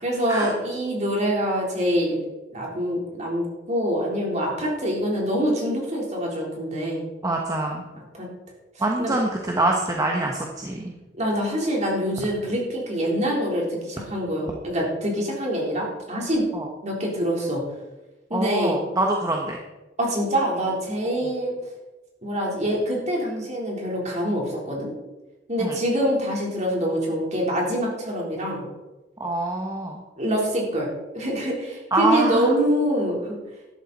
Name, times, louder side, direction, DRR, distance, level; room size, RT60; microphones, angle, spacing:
voice 1, 0.0-2.2 2.5-7.1 8.1-8.3 8.8-9.1 11.2-16.5 16.8-17.6 18.3-18.8 20.0-21.6 22.2-24.9 25.5-28.7 30.2-30.9 31.1-33.4, equal, 40° right, -2 dB, 3.8 m, -25 dB
voice 2, 7.2-7.8 8.8-10.9 16.5-16.7 18.3-19.6 21.0-21.3 25.6-25.8 29.2-30.0 31.9-32.5, right 2 dB, 20° right, 0 dB, 1.2 m, -25 dB
12.5 x 11.5 x 4.2 m, 1.1 s
head